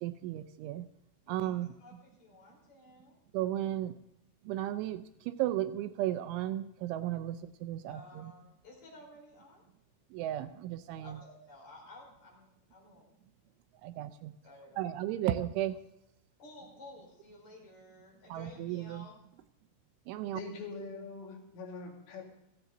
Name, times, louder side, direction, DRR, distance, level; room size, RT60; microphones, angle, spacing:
voice 1, 0.0-0.9 1.3-1.7 3.3-3.9 4.5-8.3 10.1-11.2 13.8-14.3 14.8-15.8 18.3-19.1 20.1-20.4, right 13 dB, 80° right, 3.0 m, -34 dB
voice 2, 1.3-3.2 7.9-9.6 11.0-13.2 14.4-14.9 16.4-19.2, left 2 dB, 35° left, 5.7 m, -54 dB
voice 3, 20.3-22.3, left 3 dB, 85° left, 4.7 m, -43 dB
16.5 x 15.5 x 3.9 m
omnidirectional pair, 5.6 m